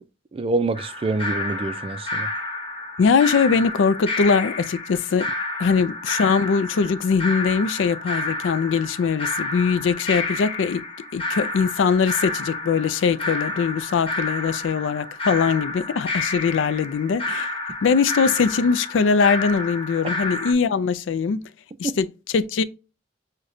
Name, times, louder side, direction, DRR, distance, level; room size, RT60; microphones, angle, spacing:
voice 1, 0.3-2.3 20.0-20.1 21.8-22.0, right 3 dB, 30° right, 0.3 m, -26 dB
sound 1, 0.8-20.5, left 2 dB, 30° left, 0.9 m, -30 dB
voice 2, 3.0-5.3 5.6-10.8 11.1-17.5 17.8-21.5 21.8-22.6, left 5 dB, 90° left, 0.4 m, -21 dB
6.4 x 2.2 x 2.5 m
head